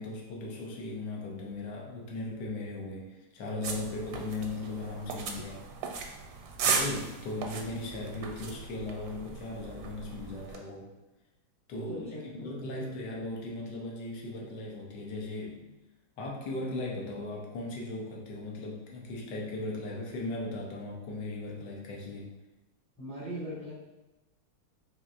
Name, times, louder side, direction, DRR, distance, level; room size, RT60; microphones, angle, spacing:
voice 1, 0.0-5.6 6.6-10.9 11.7-12.1 12.3-15.7 16.2-22.3, left 2 dB, 70° left, -1 dB, 1.1 m, -38 dB
sound 1, 3.6-10.6, right 5 dB, 85° right, 1.4 m, -36 dB
voice 2, 11.7-12.2 12.6-12.9 23.0-23.7, equal, 5° left, -9 dB, 0.6 m, -40 dB
4.3 x 3.0 x 2.4 m, 1.1 s
omnidirectional pair, 2.3 m